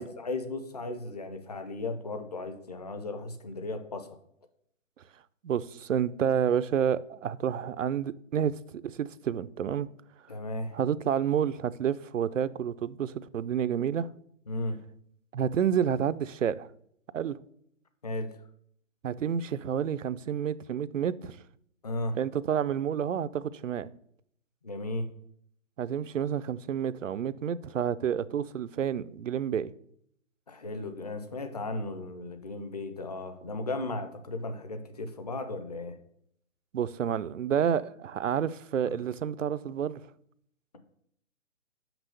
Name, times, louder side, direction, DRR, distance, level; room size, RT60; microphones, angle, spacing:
voice 1, 0.0-4.2 10.3-10.8 14.5-14.8 18.0-18.3 21.8-22.2 24.6-25.1 30.5-36.0 38.9-39.0, left 2 dB, 30° left, 0.7 m, -35 dB
voice 2, 5.4-9.9 10.7-14.1 15.3-16.7 17.1-17.4 19.0-21.4 22.2-23.9 25.8-29.7 36.7-40.0, right 8 dB, 65° right, 0.6 m, -29 dB
6.1 x 5.8 x 6.7 m
hypercardioid pair, 170°, 41 cm